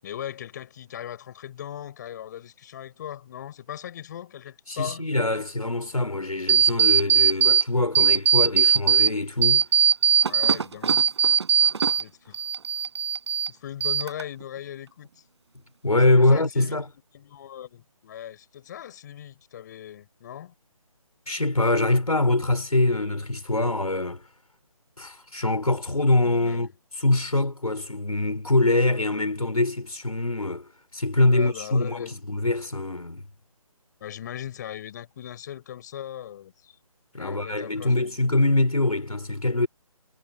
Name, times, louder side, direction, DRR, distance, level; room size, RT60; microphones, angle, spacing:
voice 1, 0.0-5.5 10.3-11.0 12.0-12.4 13.5-15.1 16.2-16.8 17.1-20.5 26.2-26.7 31.3-32.1 34.0-36.7 37.1-38.1, left 10 dB, 30° left, 6.6 m, -39 dB
voice 2, 4.7-9.7 15.8-16.9 21.3-24.2 25.0-33.2 37.1-39.7, left 2 dB, 80° left, 4.1 m, -24 dB
sound 1, 6.5-7.6 7.9-9.1 9.4-12.0 12.3-13.5 13.8-14.4, right 7 dB, 50° right, 6.0 m, -20 dB
figure-of-eight pair, 150°, 18 cm